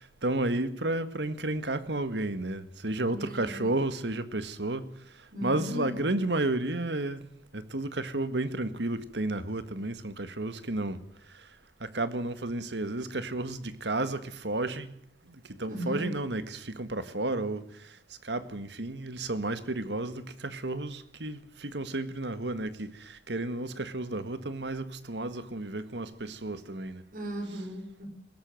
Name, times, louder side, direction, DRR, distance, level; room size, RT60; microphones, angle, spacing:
voice 1, 0.0-7.2 7.5-11.0 11.3-11.5 11.8-15.0 15.3-27.0, right 2 dB, 75° right, 1.7 m, -32 dB
voice 2, 3.0-3.7 5.3-5.9 15.7-16.2 27.1-28.1, equal, 50° right, 5.4 m, -36 dB
21.0 x 18.0 x 7.8 m
head